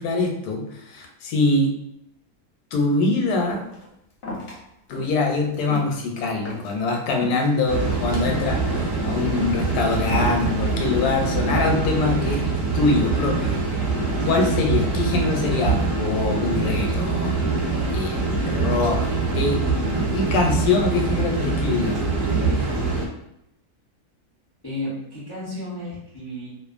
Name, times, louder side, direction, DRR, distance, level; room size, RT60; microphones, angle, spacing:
voice 1, 0.0-1.7 2.7-3.6 4.9-12.4 12.7-13.5 14.2-17.5 17.9-19.1 19.4-19.6 20.1-22.0, left 3 dB, 80° left, 2 dB, 1.1 m, -23 dB
sound 1, 3.5-3.9 4.2-4.6 4.9-5.2 5.5-6.8 7.1-7.5 7.9-8.3 8.7-9.0 9.3-9.7 10.2-10.6 11.0-11.5, left 1 dB, 50° left, 0.8 m, -37 dB
sound 2, 7.7-23.1, right 3 dB, 60° right, 0.7 m, -24 dB
voice 2, 24.6-26.5, left 1 dB, 30° left, -8 dB, 0.4 m, -32 dB
2.4 x 2.4 x 2.4 m, 0.80 s
omnidirectional pair, 1.7 m